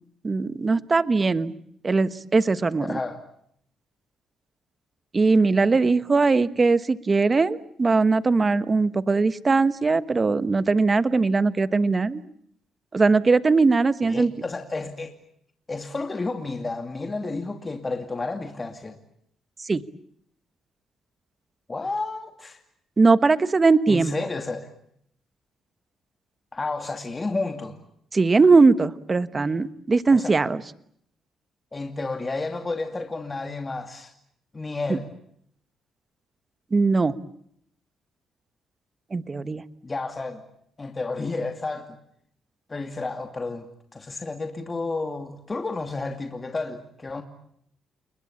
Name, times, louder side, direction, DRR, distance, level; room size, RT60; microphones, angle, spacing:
voice 1, 0.2-1.5 1.8-3.0 5.1-12.2 12.9-14.3 19.7-19.8 23.0-24.1 28.1-30.6 34.9-35.0 36.7-37.2 39.1-39.6, right 4 dB, 30° right, 1.3 m, -20 dB
voice 2, 2.8-3.2 14.0-15.1 15.7-19.0 21.7-22.6 23.9-24.7 26.5-27.8 30.1-30.3 31.7-34.1 34.5-35.1 39.8-40.4 40.8-42.0 42.7-43.7 43.9-47.2, left 3 dB, 25° left, 2.5 m, -31 dB
29.5 x 21.5 x 8.6 m
cardioid pair, 90°, 0 cm